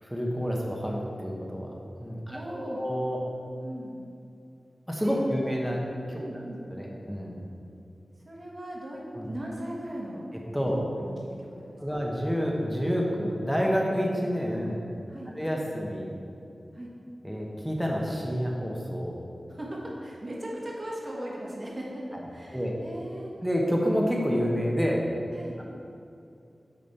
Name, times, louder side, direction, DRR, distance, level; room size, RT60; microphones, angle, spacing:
voice 1, 0.0-1.7 2.0-3.2 4.9-5.8 6.1-6.4 6.7-7.4 9.1-9.3 10.5-10.8 11.8-14.8 15.4-16.1 17.2-19.2 22.1-22.2 22.5-22.8 23.4-25.1 25.6-25.7, equal, ahead, -2 dB, 1.0 m, -28 dB
voice 2, 2.3-2.8 3.6-4.0 5.0-5.2 6.2-6.6 8.2-9.0 9.3-10.2 10.6-11.1 11.4-12.0 15.1-15.4 16.7-16.9 19.5-22.0 22.3-23.3 25.3-25.6, right 1 dB, 35° right, -3 dB, 1.6 m, -38 dB
8.7 x 5.2 x 4.2 m, 2.5 s
wide cardioid pair, 95°, 0 cm